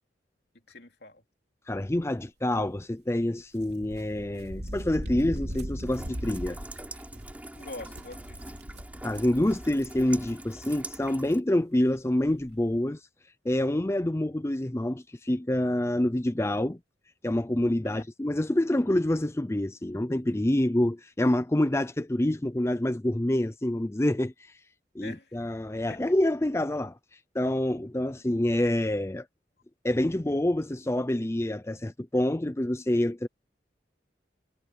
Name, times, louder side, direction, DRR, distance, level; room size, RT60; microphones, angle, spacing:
voice 1, 0.7-1.2 7.5-8.4 17.8-18.0 25.0-25.5 25.9-26.0, left 2 dB, 65° left, 3.3 m, -44 dB
voice 2, 1.7-6.6 9.0-13.0 13.4-16.8 17.2-24.5 24.9-29.3 29.8-33.3, left 1 dB, 15° left, 0.5 m, -27 dB
sound 1, 3.6-10.3 10.7-10.8 11.9-12.0 12.2-12.5, equal, 65° right, 3.4 m, -39 dB
Rain, 5.9-11.4, right 1 dB, 10° right, 3.6 m, -43 dB
head